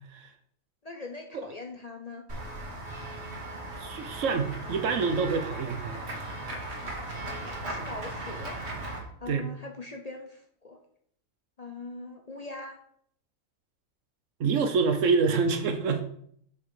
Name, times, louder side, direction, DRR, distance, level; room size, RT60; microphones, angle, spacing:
voice 1, 0.8-2.3 7.3-8.6 9.2-10.8 11.6-12.8, left 3 dB, 40° left, 3 dB, 0.6 m, -41 dB
Run / Walk footsteps / Bell, 2.3-9.0, right 2 dB, 55° right, 1.9 m, -37 dB
voice 2, 3.8-6.0 9.3-9.5 14.4-16.0, right 5 dB, 70° right, 8 dB, 1.2 m, -26 dB
6.7 x 5.4 x 4.8 m, 0.66 s
omnidirectional pair, 1.4 m